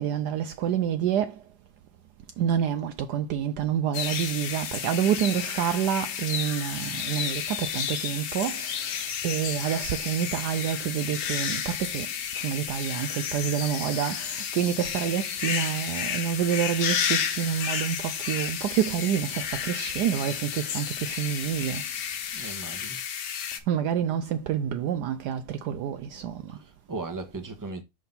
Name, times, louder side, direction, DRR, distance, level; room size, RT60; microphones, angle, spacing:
voice 1, 0.0-1.3 2.4-8.9 9.2-12.1 12.4-21.8 23.7-26.6, right 9 dB, 75° right, 1.0 m, -28 dB
sound 1, 3.9-23.6, left 8 dB, 65° left, 1.4 m, -32 dB
voice 2, 22.3-23.0 26.6-27.8, right 3 dB, 15° right, 1.0 m, -37 dB
6.1 x 3.7 x 5.4 m
omnidirectional pair, 2.0 m